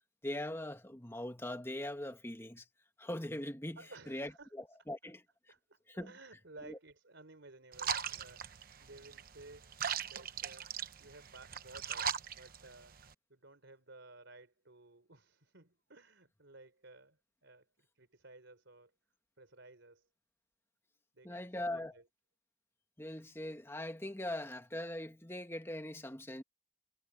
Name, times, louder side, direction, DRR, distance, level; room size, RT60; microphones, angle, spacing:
voice 1, 0.2-2.6 3.0-3.8 4.1-5.2 5.9-6.1 6.7-6.8 21.2-22.0 23.0-26.4, left 1 dB, 15° left, 1.6 m, -41 dB
voice 2, 3.8-4.5 5.0-5.1 5.5-9.7 10.0-13.0 13.3-17.7 17.9-18.9 19.4-20.1 21.1-22.1, right 2 dB, 70° right, 3.9 m, -56 dB
sound 1, 7.7-13.1, right 8 dB, 50° right, 1.0 m, -40 dB
head